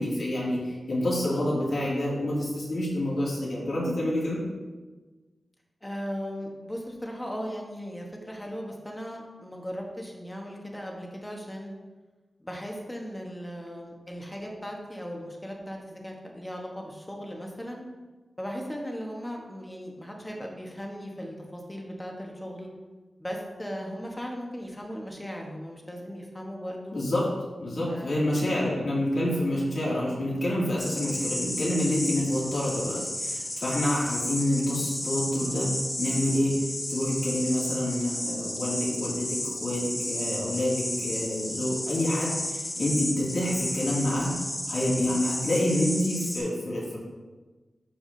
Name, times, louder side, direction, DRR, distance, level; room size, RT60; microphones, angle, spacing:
voice 1, 0.0-4.4 26.9-27.3 27.6-36.6 36.9-44.4 44.7-47.0, left 1 dB, 65° left, -6 dB, 2.4 m, -28 dB
voice 2, 5.8-11.7 12.4-17.8 18.4-22.7 23.2-27.0 27.8-28.3, equal, 15° left, 0 dB, 1.3 m, -37 dB
sound 1, 30.8-46.4, left 1 dB, 30° left, 1.5 m, -33 dB
11.5 x 4.7 x 2.7 m, 1.3 s
wide cardioid pair, 90°, 0 cm